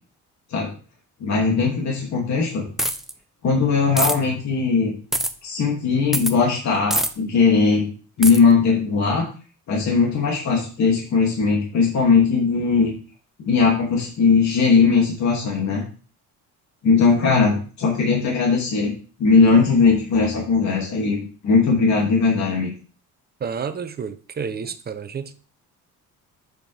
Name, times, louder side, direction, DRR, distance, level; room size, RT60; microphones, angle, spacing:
voice 1, 1.2-2.7 3.4-4.9 5.4-7.9 8.2-9.3 9.7-12.9 13.4-15.8 16.8-18.9 19.2-22.7, left 4 dB, 60° left, 2.7 m, -19 dB
sound 1, 2.8-3.1 4.0-4.2 5.1-5.3 6.1-6.3 6.9-7.1 8.2-8.4, right 1 dB, ahead, 0.6 m, -22 dB
voice 2, 23.4-25.3, right 6 dB, 30° right, 0.8 m, -30 dB
7.9 x 6.7 x 3.5 m
cardioid pair, 130°, 32 cm